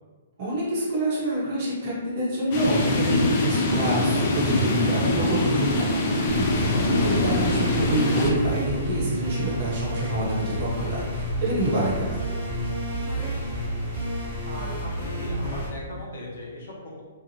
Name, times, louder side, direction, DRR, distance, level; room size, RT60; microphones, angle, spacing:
voice 1, 0.4-6.0 6.3-6.8 7.0-12.3, right 1 dB, 35° right, -6 dB, 0.8 m, -26 dB
sound 1, 2.5-8.3, left 2 dB, 30° left, 0.4 m, -24 dB
sound 2, 6.3-15.7, equal, 10° left, 1.2 m, -30 dB
voice 2, 13.0-13.5 14.2-17.0, left 1 dB, 55° left, -4 dB, 0.8 m, -39 dB
2.7 x 2.1 x 2.8 m, 1.4 s
hypercardioid pair, 170°, 0 cm